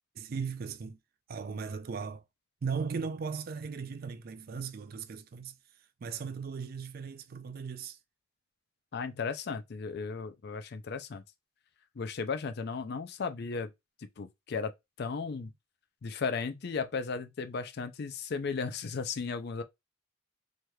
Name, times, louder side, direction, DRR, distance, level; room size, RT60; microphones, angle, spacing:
voice 1, 0.2-1.0 1.3-2.2 2.6-5.6 6.0-8.0, right 5 dB, 50° right, 0.4 m, -37 dB
voice 2, 8.9-11.2 12.0-13.7 14.2-14.7 15.0-15.5 16.0-19.6, left 5 dB, 55° left, 0.4 m, -35 dB
3.2 x 2.9 x 2.2 m
head